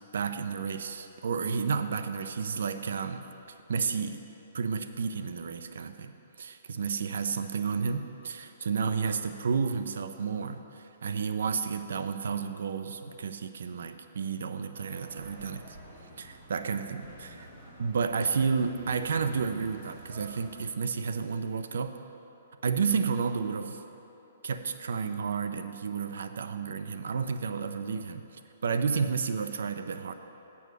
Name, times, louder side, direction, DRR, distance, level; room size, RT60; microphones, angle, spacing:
voice 1, 0.1-3.2 3.7-4.2 4.5-6.1 6.4-15.8 16.2-17.5 17.8-21.9 22.6-23.8 24.4-28.2 28.6-30.1, right 5 dB, 75° right, 9 dB, 0.6 m, -31 dB
sound 1, 14.7-20.6, right 1 dB, 20° right, 2.4 m, -49 dB
8.1 x 7.1 x 6.1 m, 2.9 s
hypercardioid pair, 160°, 0 cm